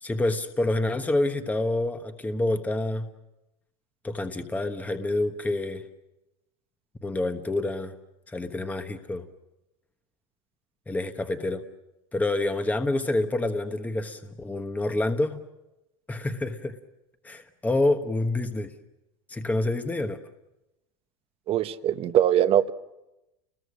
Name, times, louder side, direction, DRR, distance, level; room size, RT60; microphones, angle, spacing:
voice 1, 0.0-3.1 4.0-5.9 7.0-7.9 8.3-9.3 10.9-11.6 12.1-15.4 16.1-16.8 17.2-18.7 19.3-20.2, left 2 dB, 10° left, 7 dB, 1.2 m, -27 dB
voice 2, 21.5-22.7, right 10 dB, 40° right, 12 dB, 1.0 m, -22 dB
30.0 x 21.0 x 6.4 m, 0.93 s
supercardioid pair, 120°, 15 cm